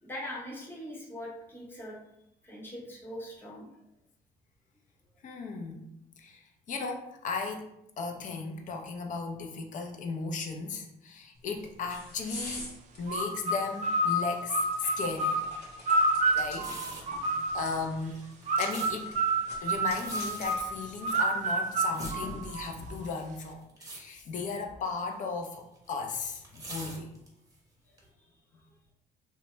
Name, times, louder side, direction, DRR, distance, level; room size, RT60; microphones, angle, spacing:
voice 1, 0.0-2.0 2.4-3.7 28.2-28.3, left 1 dB, 10° left, -3 dB, 0.8 m, -41 dB
voice 2, 5.2-5.9 6.2-6.4 6.7-7.7 8.0-12.7 13.0-15.4 16.3-18.2 18.6-19.1 19.6-27.1, left 4 dB, 50° left, 4 dB, 0.5 m, -36 dB
sound 1, 11.4-22.8, left 1 dB, 85° left, 0.9 m, -47 dB
sound 2, 13.1-17.8 18.5-22.9, right 2 dB, 45° right, 0.4 m, -29 dB
sound 3, 16.5-17.2 18.0-18.9 19.9-20.6 21.4-22.5 23.0-23.4 23.7-24.0 24.3-24.5 25.4-27.5 28.0-28.1, right 2 dB, 20° right, 0.8 m, -43 dB
2.7 x 2.2 x 3.0 m, 0.82 s
cardioid pair, 110°, 17 cm